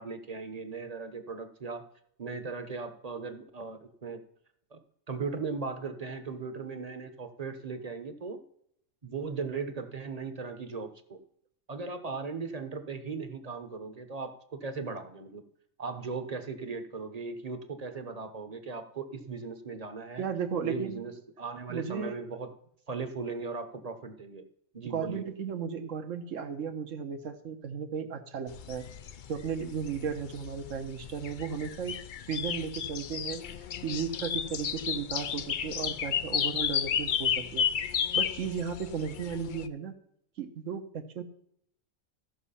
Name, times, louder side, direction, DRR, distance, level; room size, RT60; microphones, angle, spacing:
voice 1, 0.0-1.8 2.2-4.2 4.7-4.8 5.1-8.4 9.0-11.2 11.7-15.4 15.8-20.3 20.6-22.5 22.9-24.4 24.7-25.2, right 4 dB, 35° right, 8 dB, 1.0 m, -38 dB
voice 2, 20.2-21.1 21.7-22.2 24.8-28.8 29.3-32.0 32.3-33.4 33.8-37.7 38.1-39.9 40.4-41.2, right 6 dB, 70° right, 6 dB, 1.4 m, -35 dB
sound 1, 28.5-39.7, left 8 dB, 60° left, 0.5 m, -33 dB
14.5 x 6.1 x 5.6 m, 0.69 s
omnidirectional pair, 1.4 m